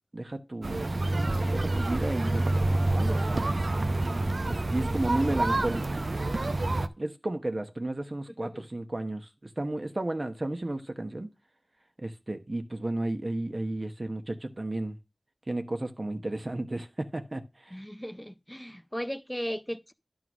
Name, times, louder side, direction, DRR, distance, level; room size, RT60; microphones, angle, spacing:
voice 1, 0.1-0.9 1.5-3.7 4.4-6.0 7.0-11.3 12.0-15.0 15.5-17.8, right 2 dB, 50° right, 1.1 m, -33 dB
sound 1, 0.6-6.9, right 2 dB, 75° right, 0.7 m, -27 dB
voice 2, 17.7-19.9, equal, 5° left, 0.6 m, -36 dB
11.0 x 3.8 x 6.2 m
wide cardioid pair, 40°, 0 cm